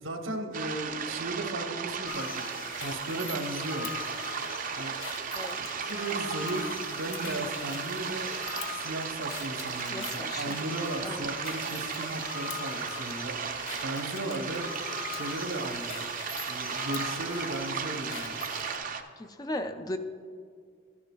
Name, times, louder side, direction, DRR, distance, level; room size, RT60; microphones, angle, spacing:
voice 1, 0.0-2.4 2.7-3.9 4.7-5.0 5.6-8.3 8.7-14.7 15.1-16.0 16.5-18.4, right 2 dB, 80° right, 4 dB, 0.9 m, -36 dB
sound 1, 0.5-19.0, right 6 dB, 40° right, 0.5 m, -35 dB
sound 2, 2.1-18.8, left 6 dB, 85° left, 0.8 m, -42 dB
voice 2, 5.3-5.7 9.9-10.6 11.0-11.3 19.2-20.0, left 1 dB, 20° left, 7 dB, 0.3 m, -37 dB
12.5 x 9.8 x 2.3 m, 2.1 s
head